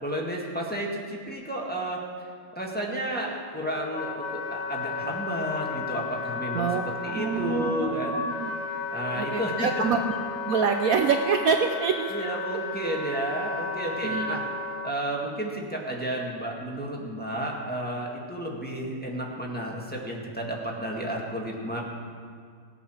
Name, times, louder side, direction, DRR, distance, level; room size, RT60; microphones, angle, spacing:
voice 1, 0.0-2.0 2.5-8.2 8.9-9.8 12.1-14.4 14.8-21.8, right 1 dB, 5° left, -3 dB, 1.6 m, -32 dB
Wind instrument woodwind instrument, 3.3-14.9, left 4 dB, 60° left, 1.7 m, -33 dB
voice 2, 6.5-8.5 9.2-10.2 10.4-12.3 14.0-14.4, right 6 dB, 85° right, 5 dB, 0.7 m, -26 dB
18.0 x 8.4 x 6.3 m, 2.1 s
omnidirectional pair, 2.3 m